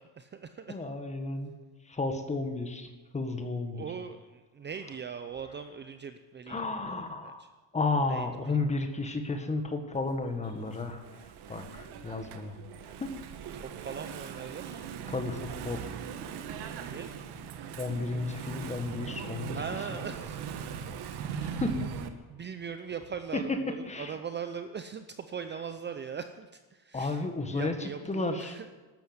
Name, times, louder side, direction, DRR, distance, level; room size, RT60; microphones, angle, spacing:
voice 1, 0.0-0.8 3.7-7.5 8.1-8.6 13.5-14.9 16.8-17.1 19.5-20.5 22.3-28.7, right 6 dB, 25° right, 9 dB, 0.7 m, -40 dB
voice 2, 0.7-1.5 1.8-3.8 6.5-7.4 7.7-11.0 11.5-12.6 13.0-13.1 15.1-15.9 17.8-19.6 19.9-20.0 21.4-21.8 23.3-23.6 23.9-24.1 26.9-28.6, left 3 dB, 15° left, 6 dB, 1.7 m, -33 dB
Engine / Mechanisms, 9.9-22.1, right 7 dB, 75° right, 1.5 m, -40 dB
13.0 x 12.5 x 8.0 m, 1.3 s
cardioid pair, 150°, 39 cm